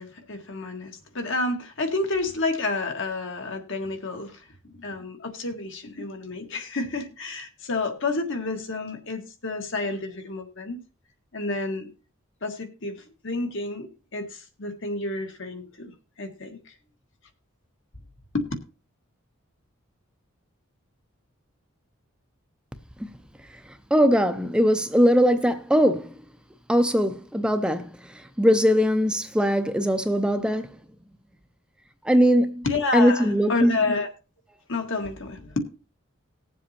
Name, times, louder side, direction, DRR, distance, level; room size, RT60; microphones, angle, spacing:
voice 1, 0.0-10.8 11.3-11.9 12.4-16.7 18.3-18.4 32.6-34.1 34.7-35.6, left 3 dB, 60° left, 1.8 m, -30 dB
voice 2, 23.9-26.1 26.7-30.7 32.0-32.6 32.9-33.8, equal, 5° right, 0.5 m, -21 dB
19.5 x 7.5 x 2.9 m
head